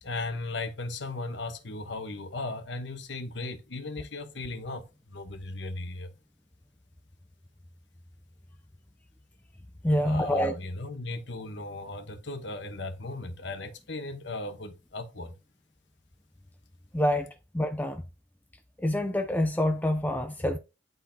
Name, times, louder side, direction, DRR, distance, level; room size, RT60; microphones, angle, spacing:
voice 1, 0.0-6.1 10.0-15.3, left 2 dB, 65° left, 1.0 m, -37 dB
voice 2, 9.8-10.6 16.9-18.0 18.8-20.6, left 1 dB, 10° left, 0.4 m, -26 dB
11.0 x 4.0 x 2.8 m
head